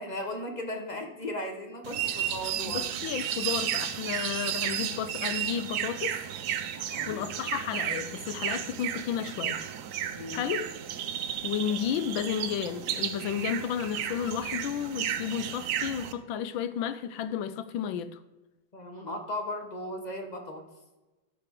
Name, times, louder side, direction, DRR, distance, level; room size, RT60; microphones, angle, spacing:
voice 1, 0.0-2.8 6.9-7.2 10.1-10.4 18.7-20.6, left 1 dB, 30° left, 0.9 m, -36 dB
sound 1, 1.8-16.1, right 10 dB, 70° right, 1.1 m, -33 dB
voice 2, 2.6-6.2 7.1-9.6 10.3-10.7 11.4-18.2, left 9 dB, 80° left, 1.4 m, -32 dB
13.5 x 5.8 x 3.7 m
omnidirectional pair, 2.1 m